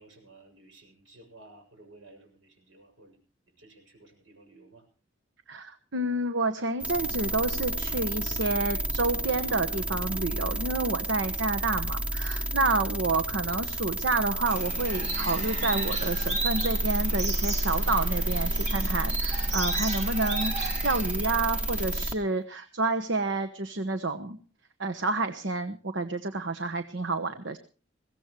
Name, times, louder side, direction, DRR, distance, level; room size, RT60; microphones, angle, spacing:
voice 1, 0.0-3.2 3.6-4.8, right 2 dB, 90° right, 3 dB, 7.0 m, -54 dB
voice 2, 5.5-24.4 24.8-27.6, right 3 dB, 70° right, 8 dB, 1.2 m, -29 dB
sound 1, 6.8-22.1, right 1 dB, 5° right, 0.6 m, -30 dB
sound 2, 14.5-22.0, right 2 dB, 40° right, 2.6 m, -36 dB
21.5 x 17.0 x 3.2 m, 0.36 s
head